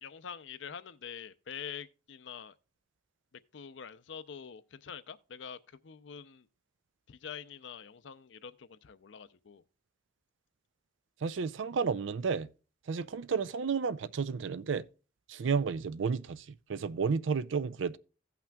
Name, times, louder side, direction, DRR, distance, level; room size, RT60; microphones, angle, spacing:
voice 1, 0.0-2.6 3.5-6.5 7.1-9.6, left 7 dB, 70° left, 0.5 m, -45 dB
voice 2, 11.2-12.5 12.9-14.8 15.3-18.0, right 5 dB, 75° right, 0.4 m, -32 dB
16.5 x 5.9 x 2.3 m
head